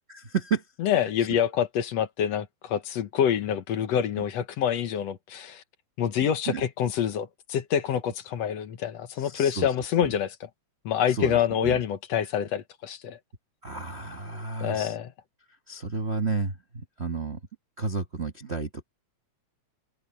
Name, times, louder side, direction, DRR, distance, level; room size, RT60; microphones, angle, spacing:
voice 1, 0.1-0.6 1.2-1.4 6.5-6.6 9.2-9.7 10.0-10.1 11.1-11.8 13.6-15.0 15.7-17.4 17.8-18.8, right 4 dB, 40° right, 0.9 m, -32 dB
voice 2, 0.8-5.6 6.0-10.3 10.9-13.2 14.6-15.1, left 9 dB, 65° left, 2.2 m, -26 dB
omnidirectional pair, 3.3 m